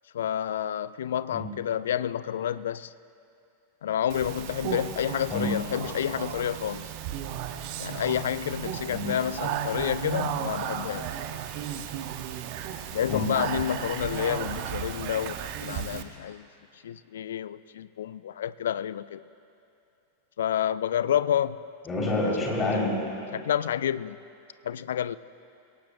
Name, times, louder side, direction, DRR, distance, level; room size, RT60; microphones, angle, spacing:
voice 1, 0.1-2.9 3.8-6.9 7.8-11.1 12.9-16.5 16.8-19.2 20.4-21.6 23.3-24.2 24.6-25.2, left 10 dB, 60° left, 17 dB, 0.3 m, -29 dB
Speech, 4.1-16.0, right 9 dB, 45° right, 0.8 m, -34 dB
voice 2, 21.9-23.0, left 2 dB, 20° left, -3 dB, 3.9 m, -27 dB
22.0 x 17.5 x 2.5 m, 2.7 s
figure-of-eight pair, 90°, 0 cm